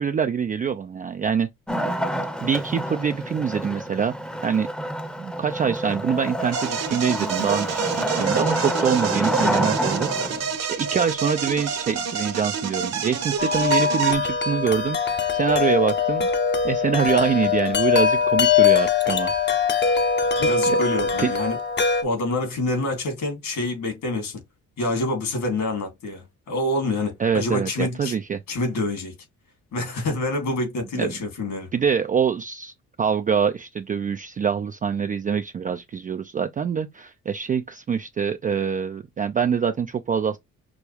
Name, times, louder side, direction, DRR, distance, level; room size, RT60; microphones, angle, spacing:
voice 1, 0.0-1.5 2.4-4.1 4.4-4.7 5.2-16.3 16.6-19.3 20.7-20.8 21.2-21.3 27.2-28.4 30.9-31.1 31.7-32.7 33.0-40.4, right 7 dB, 30° right, 0.4 m, -25 dB
Wood, 1.7-10.6, equal, 5° left, 0.7 m, -28 dB
sound 1, 6.5-14.1, right 7 dB, 60° right, 1.1 m, -27 dB
Wind chime, 13.4-22.0, left 6 dB, 35° left, 0.8 m, -22 dB
voice 2, 20.4-21.6 22.0-24.4 24.8-28.1 28.5-29.1 29.7-31.7, left 2 dB, 70° left, 2.8 m, -27 dB
6.2 x 2.3 x 3.4 m
cardioid pair, 90°, 30 cm